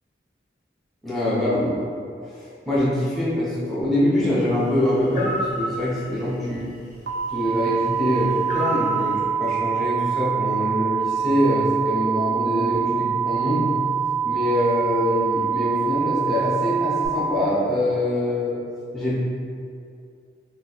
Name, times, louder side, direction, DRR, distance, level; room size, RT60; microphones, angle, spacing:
voice 1, 1.0-1.8 2.7-6.7 7.3-13.7 14.2-18.5 18.9-19.2, left 1 dB, ahead, -9 dB, 0.9 m, -24 dB
sound 1, 5.1-5.6 8.5-8.9, right 1 dB, 40° left, 0.6 m, -28 dB
sound 2, 7.1-17.1, right 8 dB, 70° right, 0.5 m, -25 dB
3.1 x 2.4 x 4.1 m, 2.3 s
head